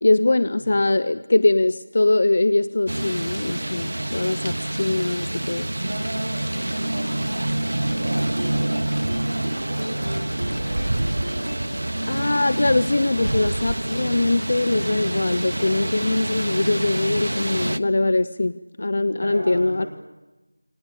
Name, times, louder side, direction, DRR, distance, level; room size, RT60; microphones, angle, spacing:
voice 1, 0.0-5.7 12.1-19.9, left 2 dB, 45° left, 15 dB, 0.8 m, -22 dB
sound 1, 2.9-17.8, right 1 dB, 65° right, 1.2 m, -27 dB
voice 2, 5.7-7.2 7.7-12.1 19.2-19.9, right 1 dB, 35° right, -3 dB, 6.7 m, -37 dB
sound 2, 8.0-13.5, right 1 dB, 85° right, 1.8 m, -37 dB
28.0 x 25.0 x 7.0 m, 1.1 s
figure-of-eight pair, 170°, 0 cm